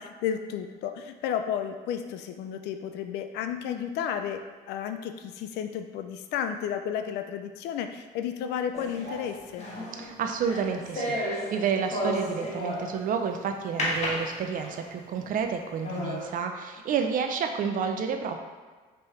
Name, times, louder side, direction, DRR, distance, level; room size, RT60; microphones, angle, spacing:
voice 1, 0.0-9.7, left 8 dB, 80° left, 7 dB, 0.4 m, -32 dB
sound 1, 8.7-13.1 13.8-14.9 15.4-15.5 15.8-16.3, left 1 dB, 40° left, 1.2 m, -33 dB
voice 2, 9.9-11.2 11.5-18.4, right 6 dB, 55° right, 5 dB, 0.5 m, -30 dB
4.7 x 3.0 x 3.1 m, 1.5 s
cardioid pair, 110°, 17 cm